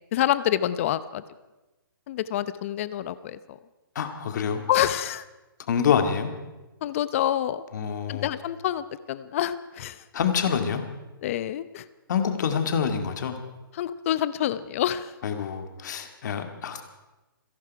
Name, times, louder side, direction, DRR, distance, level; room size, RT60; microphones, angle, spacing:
voice 1, 0.1-1.2 2.1-3.6 4.7-5.2 6.8-7.6 8.1-10.0 11.2-11.9 13.7-15.1, left 11 dB, 35° left, 15 dB, 0.7 m, -27 dB
voice 2, 4.0-4.6 5.7-6.3 7.7-8.3 10.1-10.8 12.1-13.4 15.2-16.8, left 7 dB, 50° left, 6 dB, 2.2 m, -26 dB
27.5 x 11.0 x 4.8 m, 1.1 s
hypercardioid pair, 155°, 12 cm